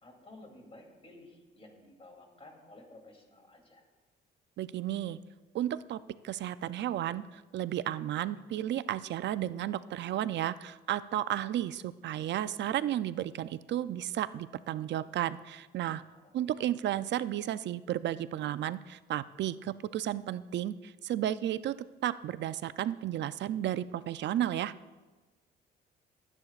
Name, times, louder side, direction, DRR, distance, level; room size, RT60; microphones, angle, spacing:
voice 1, 0.0-3.9 15.9-16.6, left 2 dB, 30° left, 2 dB, 2.9 m, -54 dB
voice 2, 4.6-5.2 5.5-16.0 16.3-21.8 22.0-24.7, right 12 dB, 65° right, 15 dB, 0.4 m, -33 dB
19.5 x 9.8 x 2.4 m, 1.2 s
cardioid pair, 90°, 20 cm